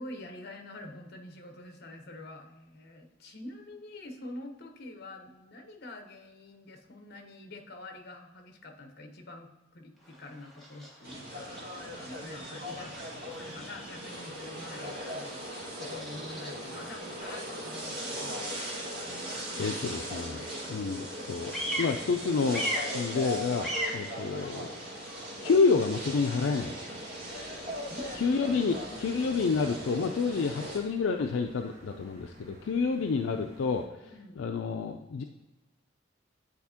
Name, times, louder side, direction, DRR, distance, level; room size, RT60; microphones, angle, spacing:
voice 1, 0.0-15.5 15.8-18.4 27.9-28.1 32.8-33.0 34.1-34.4, left 1 dB, 55° left, 5 dB, 0.9 m, -46 dB
Bird vocalization bird call bird song, 10.0-28.7, equal, ahead, 1.3 m, -42 dB
sound 1, 11.0-30.8, equal, 55° right, 2.1 m, -39 dB
voice 2, 19.6-24.7 25.4-26.8 28.2-35.2, left 4 dB, 75° left, 4 dB, 0.4 m, -29 dB
sound 2, 27.2-33.9, right 1 dB, 40° right, 1.2 m, -51 dB
9.4 x 4.3 x 2.8 m, 1.1 s
head